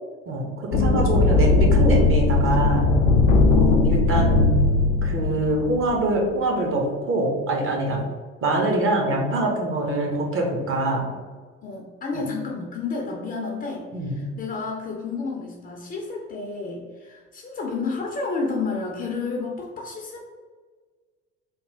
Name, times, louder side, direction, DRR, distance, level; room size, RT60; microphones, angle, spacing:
voice 1, 0.3-2.9 3.5-4.5 5.0-8.0 8.4-11.1 12.1-12.2 13.9-14.3, right 2 dB, 35° right, 0 dB, 0.9 m, -24 dB
sound 1, 0.7-6.1, left 3 dB, 65° left, 0.5 m, -19 dB
voice 2, 11.6-20.2, left 4 dB, 25° left, -1 dB, 0.6 m, -31 dB
3.4 x 2.3 x 3.4 m, 1.5 s
figure-of-eight pair, 60°, 39 cm